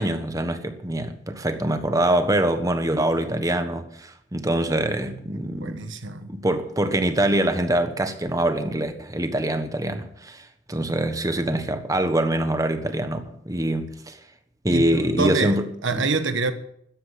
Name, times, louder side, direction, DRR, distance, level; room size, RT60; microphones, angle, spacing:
voice 1, 0.0-5.8 6.3-14.2 14.6-16.1, right 1 dB, 20° right, 1.3 m, -24 dB
voice 2, 5.6-6.3 14.7-16.5, right 4 dB, 90° right, 1.5 m, -26 dB
13.0 x 9.9 x 8.4 m
head